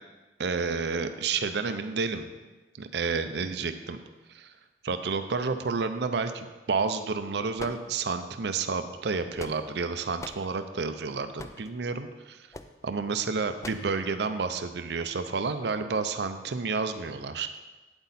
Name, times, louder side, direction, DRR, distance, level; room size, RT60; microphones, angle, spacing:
voice 1, 0.4-2.3 2.8-4.0 4.3-4.5 4.8-12.5 12.8-17.5, right 4 dB, 70° right, 9 dB, 0.5 m, -30 dB
sound 1, 7.6-8.3 9.1-9.8 10.2-10.5 11.4-11.7 12.5-12.8 13.6-13.9, left 2 dB, 15° left, 0.3 m, -42 dB
8.7 x 8.1 x 4.1 m, 1.2 s
head